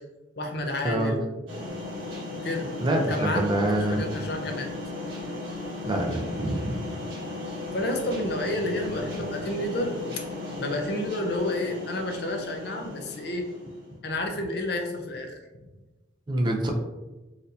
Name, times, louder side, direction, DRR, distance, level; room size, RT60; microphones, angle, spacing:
voice 1, 0.4-1.2 2.4-2.7 3.1-3.5 3.9-4.7 7.7-9.9 10.2-10.3 10.6-13.5 14.0-15.4, left 1 dB, 55° left, 2 dB, 0.5 m, -30 dB
sound 1, 1.5-13.9, left 2 dB, 85° right, 1.3 m, -36 dB
voice 2, 2.8-4.1 5.8-6.8 16.3-16.7, right 1 dB, 25° right, 1 dB, 0.4 m, -26 dB
4.2 x 2.5 x 2.6 m, 1.1 s
head